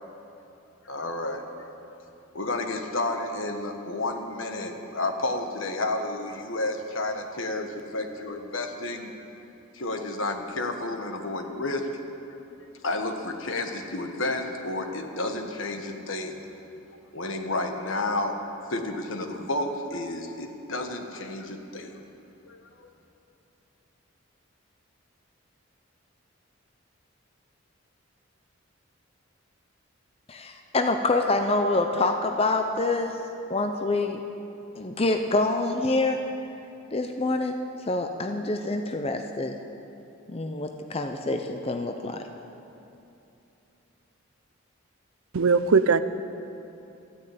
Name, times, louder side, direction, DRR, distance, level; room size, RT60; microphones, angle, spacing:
voice 1, 0.8-1.4 2.3-9.1 9.7-11.9 12.8-16.4 17.1-18.4 18.7-21.9 22.4-22.6, left 2 dB, 70° left, 5 dB, 1.4 m, -31 dB
voice 2, 30.3-33.1 33.5-34.2 34.8-36.2 36.9-37.5 37.9-39.6 40.3-42.2, left 2 dB, 30° left, 5 dB, 0.6 m, -26 dB
voice 3, 45.3-46.0, right 5 dB, 85° right, 12 dB, 0.6 m, -19 dB
14.0 x 9.9 x 8.6 m, 2.8 s
head